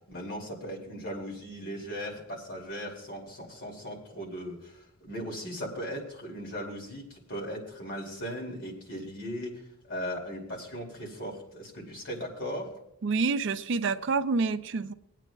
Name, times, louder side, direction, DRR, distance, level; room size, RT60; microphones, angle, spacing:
voice 1, 0.1-9.6 9.9-12.7, equal, 55° left, -1 dB, 2.6 m, -38 dB
voice 2, 13.0-14.9, right 4 dB, 55° right, 10 dB, 0.5 m, -27 dB
23.0 x 9.1 x 2.3 m, 0.76 s
head